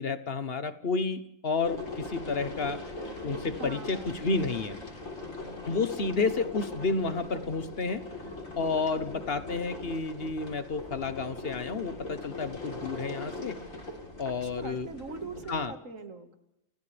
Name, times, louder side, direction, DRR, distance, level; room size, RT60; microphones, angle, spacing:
voice 1, 0.0-2.8 3.2-4.8 5.7-8.0 8.6-13.5 14.2-14.9 15.5-15.7, left 4 dB, 50° left, 11 dB, 1.3 m, -31 dB
sound 1, 1.6-15.6, left 2 dB, 80° left, 4.2 m, -40 dB
voice 2, 3.6-4.3 14.2-16.3, right 4 dB, 85° right, 6 dB, 2.4 m, -42 dB
29.0 x 28.0 x 3.5 m, 0.83 s
omnidirectional pair, 1.3 m